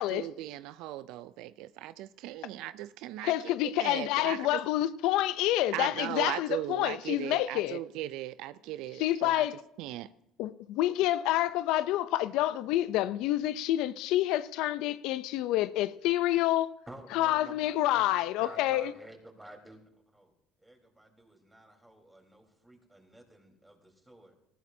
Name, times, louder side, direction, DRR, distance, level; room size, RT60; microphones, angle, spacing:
voice 1, 0.0-3.5 3.8-4.6 5.7-9.5 9.8-10.1, right 14 dB, 75° right, 0.4 m, -38 dB
voice 2, 3.2-7.8 9.0-9.6 10.4-16.7 17.1-18.9, left 14 dB, 75° left, 0.5 m, -28 dB
voice 3, 16.9-19.8 20.1-20.3 20.6-24.4, right 1 dB, 10° right, 4.0 m, -51 dB
19.5 x 14.5 x 2.7 m
supercardioid pair, 80°, 0 cm